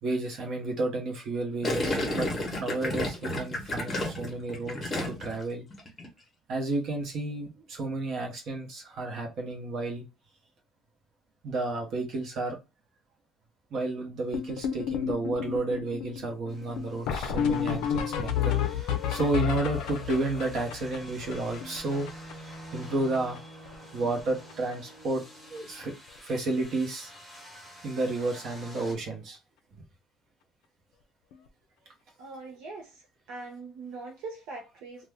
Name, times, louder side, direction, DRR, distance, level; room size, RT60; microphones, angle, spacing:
voice 1, 0.0-2.3 2.6-5.6 6.5-10.0 11.4-12.6 13.7-22.1 22.7-23.4 23.9-25.2 25.5-25.9 26.2-27.1 27.8-29.4, right 2 dB, 40° right, 0.9 m, -31 dB
Gurgling, 1.6-5.4 5.7-6.1, left 1 dB, 15° left, 0.9 m, -31 dB
sound 1, 14.3-22.5 22.8-22.9 23.1-23.4 23.7-24.2 24.5-24.7 25.6-25.7 26.1-26.2 26.5-26.6 28.9-29.0 31.3-31.4, left 8 dB, 70° left, 0.5 m, -31 dB
sound 2, 16.5-28.9, equal, 5° right, 1.1 m, -48 dB
voice 2, 32.2-35.1, right 3 dB, 70° right, 0.7 m, -42 dB
2.6 x 2.2 x 3.4 m
cardioid pair, 180°, 0 cm